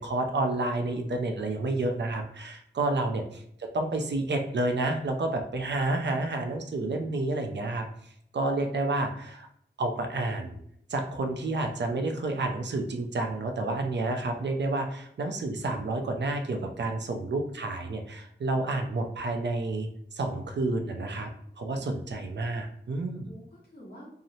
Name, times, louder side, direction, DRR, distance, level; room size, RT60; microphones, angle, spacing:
voice 1, 0.0-7.9 8.3-9.5 9.8-10.6 10.9-21.3 21.6-23.3, right 2 dB, 75° right, 4 dB, 0.4 m, -30 dB
voice 2, 23.2-24.1, equal, 60° left, -7 dB, 1.0 m, -51 dB
2.7 x 2.0 x 2.7 m, 0.69 s
wide cardioid pair, 70°, 18 cm